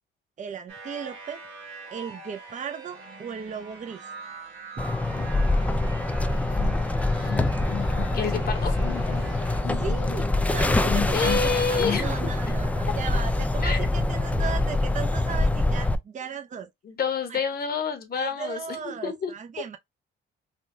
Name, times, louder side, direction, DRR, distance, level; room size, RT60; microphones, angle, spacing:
voice 1, 0.4-1.4 1.9-4.1 4.8-4.9 9.8-16.7 17.3-17.4 18.1-19.8, right 7 dB, 40° right, 0.6 m, -36 dB
sound 1, 0.7-9.6, right 3 dB, 85° right, 1.1 m, -43 dB
sound 2, 4.8-16.0, left 2 dB, 5° left, 0.4 m, -25 dB
sound 3, 5.1-5.8 6.1-12.1, left 11 dB, 70° left, 0.5 m, -37 dB
voice 2, 7.1-7.6 8.1-8.7 11.1-12.2 13.6-13.9 16.8-19.3, left 5 dB, 50° left, 1.0 m, -28 dB
3.5 x 2.3 x 2.6 m
cardioid pair, 90°, 20 cm